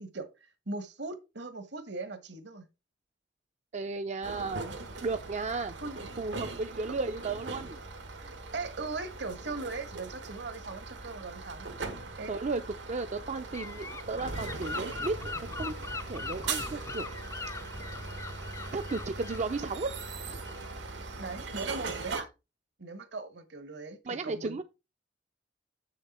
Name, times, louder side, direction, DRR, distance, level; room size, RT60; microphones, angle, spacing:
voice 1, 0.0-2.7 5.8-6.0 8.2-11.7 12.2-12.3 21.2-22.3 22.8-24.6, right 3 dB, 65° right, 1.4 m, -39 dB
voice 2, 3.7-4.7 5.0-5.8 6.2-7.8 12.3-12.6 12.9-15.7 16.1-17.1 18.7-20.0 20.3-20.6 24.1-24.6, right 3 dB, 40° right, 0.5 m, -34 dB
sound 1, 4.2-22.2, right 3 dB, 85° right, 1.7 m, -40 dB
Gull seagull / Wind, 13.5-20.8, left 3 dB, 15° left, 0.4 m, -41 dB
7.4 x 6.6 x 4.2 m
head